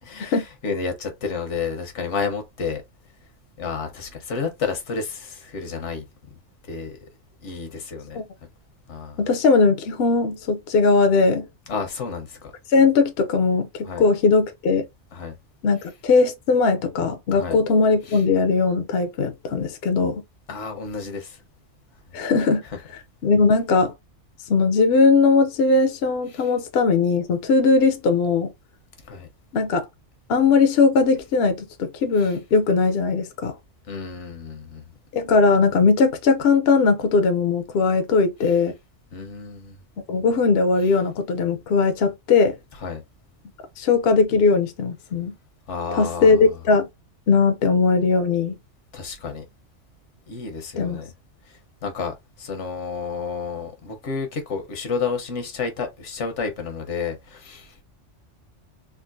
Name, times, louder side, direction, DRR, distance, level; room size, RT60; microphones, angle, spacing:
voice 1, 0.0-2.8 3.6-6.3 6.6-7.0 7.4-8.2 8.9-9.2 11.7-12.5 13.8-14.0 15.1-15.4 17.3-17.6 18.1-18.2 20.5-21.4 22.1-22.2 22.7-22.8 26.3-26.5 29.0-29.3 32.2-32.3 33.9-34.8 39.1-39.8 42.8-43.0 45.7-46.6 48.9-49.4 50.3-51.1 51.5-57.8, left 5 dB, 80° left, 1.2 m, -31 dB
voice 2, 9.2-11.5 12.7-14.8 15.6-20.2 22.1-22.6 23.2-23.9 24.5-28.5 29.5-29.9 30.3-33.5 35.1-38.7 40.1-42.6 43.8-45.3 45.9-46.9 47.3-48.6 50.8-51.0, left 4 dB, 65° left, 0.8 m, -19 dB
3.7 x 2.5 x 2.5 m
omnidirectional pair, 1.2 m